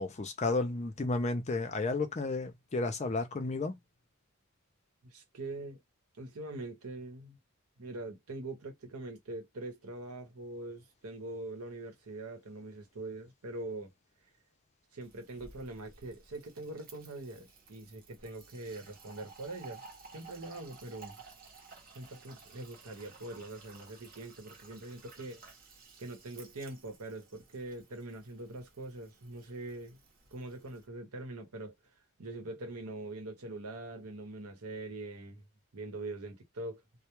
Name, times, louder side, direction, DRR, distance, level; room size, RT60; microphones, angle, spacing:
voice 1, 0.0-3.8, left 3 dB, 30° left, 0.4 m, -32 dB
voice 2, 5.0-5.8 6.2-7.4 7.8-13.9 14.9-19.8 20.1-21.2 21.9-25.4 26.0-30.0 30.3-31.7 32.2-35.4 35.7-36.8, right 2 dB, 90° right, 0.9 m, -43 dB
Fill (with liquid), 15.0-30.9, right 4 dB, 40° right, 0.8 m, -55 dB
2.3 x 2.1 x 2.9 m
head